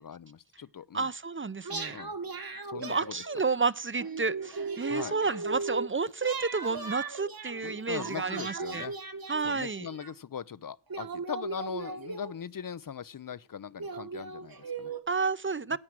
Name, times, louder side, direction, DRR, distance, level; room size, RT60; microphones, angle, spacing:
voice 1, 0.0-1.1 1.9-2.1 2.7-3.1 4.9-5.2 7.6-8.9 9.4-14.9 15.7-15.8, left 7 dB, 55° left, 0.6 m, -40 dB
voice 2, 0.9-2.0 2.8-8.9 9.3-9.9 15.1-15.8, right 4 dB, 30° right, 0.6 m, -31 dB
sound 1, 1.6-3.6 4.0-5.9 6.2-10.1 10.9-12.6 13.3-13.4 13.8-15.0, right 3 dB, 60° right, 1.6 m, -38 dB
11.0 x 8.8 x 6.0 m
wide cardioid pair, 55°, 40 cm